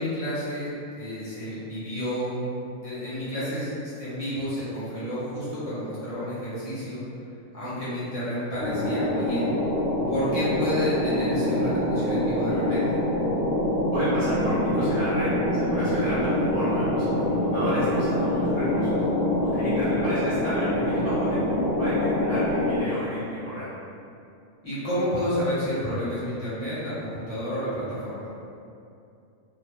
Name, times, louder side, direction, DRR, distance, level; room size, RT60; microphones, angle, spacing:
voice 1, 0.0-2.4 2.8-7.0 7.5-9.5 10.1-13.0 24.6-28.3, equal, 25° left, -12 dB, 0.9 m, -30 dB
sound 1, 8.6-22.8, left 1 dB, 60° left, 0.8 m, -25 dB
voice 2, 13.9-19.1 19.4-23.7, equal, 55° right, -13 dB, 1.2 m, -31 dB
2.9 x 2.2 x 3.3 m, 2.5 s
omnidirectional pair, 1.6 m